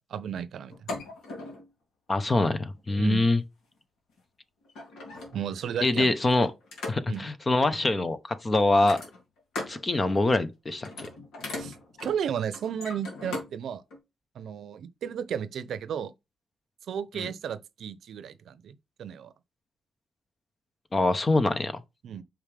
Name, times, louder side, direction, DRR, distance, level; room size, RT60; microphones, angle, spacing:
voice 1, 0.1-0.7 3.0-3.3 5.3-6.1 7.1-7.3 11.6-11.7 12.0-13.8 14.3-16.1 16.9-19.3 22.0-22.2, right 8 dB, 75° right, 0.6 m, -33 dB
sound 1, 0.7-1.7 2.8-3.0 4.2-4.3 4.7-5.6 6.3-7.3 8.7-9.8 10.2-10.5 10.8-13.5 13.9-14.0, left 2 dB, 85° left, 2.9 m, -39 dB
voice 2, 2.1-3.4 5.8-6.5 6.9-9.0 9.7-11.1 17.2-17.3 20.9-21.8, left 2 dB, 30° left, 0.9 m, -24 dB
6.0 x 5.1 x 3.4 m
cardioid pair, 95°, 0 cm